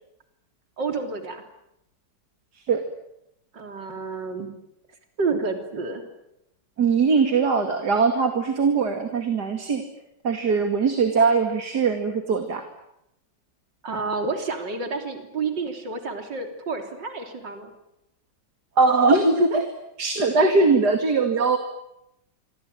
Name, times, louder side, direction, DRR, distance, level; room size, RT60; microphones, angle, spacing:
voice 1, 0.8-1.4 3.5-4.5 5.2-6.0 13.8-17.7, right 4 dB, 80° right, 5 dB, 4.1 m, -29 dB
voice 2, 6.8-9.8 10.2-12.6 18.8-21.6, right 4 dB, 65° right, 6 dB, 2.9 m, -21 dB
27.5 x 24.0 x 9.1 m, 0.84 s
omnidirectional pair, 1.9 m